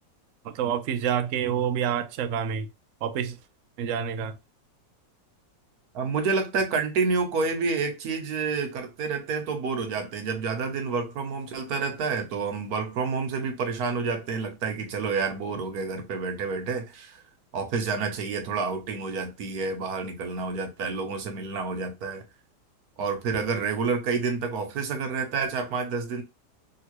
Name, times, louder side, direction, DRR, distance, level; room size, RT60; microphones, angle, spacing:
voice 1, 0.4-2.7 3.0-3.4 3.8-4.3, right 8 dB, 85° right, 0.6 m, -27 dB
voice 2, 5.9-17.2 17.5-22.2 23.0-26.2, right 4 dB, 65° right, 1.2 m, -29 dB
3.2 x 2.9 x 3.0 m
omnidirectional pair, 1.9 m